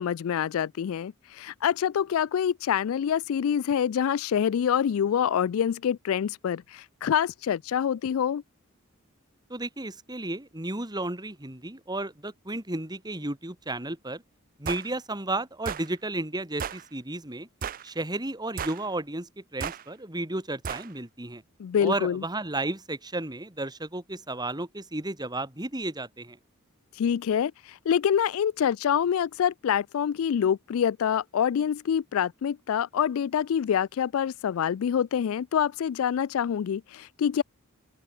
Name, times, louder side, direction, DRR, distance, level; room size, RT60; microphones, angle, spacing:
voice 1, 0.0-8.4 21.6-22.2 27.0-37.4, left 8 dB, 70° left, 0.3 m, -26 dB
voice 2, 9.5-14.2 14.6-17.5 17.8-21.4 21.8-26.4, right 2 dB, 20° right, 2.8 m, -33 dB
sound 1, 14.7-14.9 15.7-15.9 16.6-16.8 17.6-17.9 18.6-18.9 19.6-19.8 20.6-20.9, right 7 dB, 40° right, 0.5 m, -34 dB
open air
head